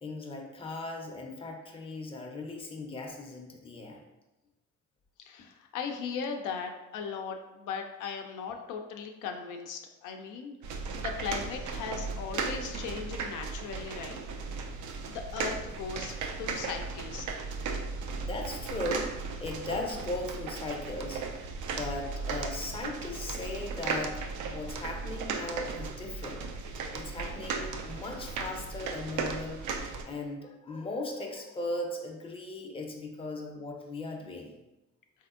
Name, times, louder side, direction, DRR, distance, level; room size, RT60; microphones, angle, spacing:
voice 1, 0.0-4.0 18.1-19.1 19.4-21.2 21.7-26.5 26.9-29.6 30.1-34.5, left 2 dB, 20° left, 1 dB, 0.5 m, -38 dB
voice 2, 5.2-14.2 14.4-14.6 15.1-17.3, left 6 dB, 85° left, 3 dB, 0.5 m, -38 dB
sound 1, 10.6-30.0, right 4 dB, 75° right, 0.5 m, -36 dB
3.5 x 2.8 x 2.4 m, 1.0 s
cardioid pair, 90°, 30 cm